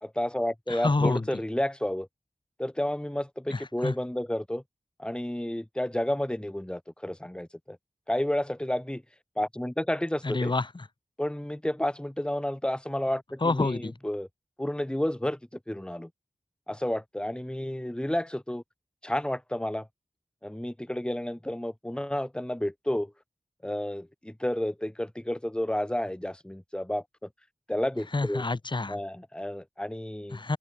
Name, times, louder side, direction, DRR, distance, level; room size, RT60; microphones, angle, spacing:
voice 1, 0.0-2.1 2.6-4.6 5.0-7.8 8.1-9.0 9.4-10.5 11.2-14.3 14.6-15.4 15.7-16.1 16.7-18.6 19.0-19.9 20.4-23.1 23.6-27.0 27.7-28.4 28.9-30.4, left 1 dB, 5° left, 1.5 m, -31 dB
voice 2, 0.7-1.2 3.5-3.9 10.2-10.9 13.4-13.9 28.1-29.0 30.3-30.6, left 3 dB, 35° left, 1.1 m, -28 dB
open air
wide cardioid pair, 70°, 13 cm